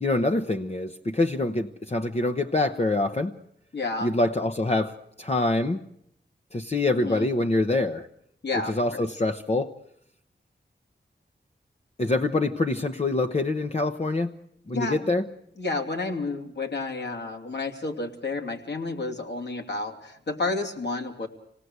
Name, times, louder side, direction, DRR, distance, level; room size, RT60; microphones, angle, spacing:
voice 1, 0.0-3.3 4.0-5.8 6.5-8.1 8.7-9.7 12.0-14.3 14.7-15.3, left 2 dB, 35° left, 6 dB, 0.9 m, -25 dB
voice 2, 3.7-4.1 7.0-7.3 8.4-9.0 14.7-15.2 15.6-21.3, left 3 dB, 65° left, 2 dB, 2.9 m, -31 dB
26.5 x 18.5 x 8.1 m, 0.75 s
wide cardioid pair, 90°, 19 cm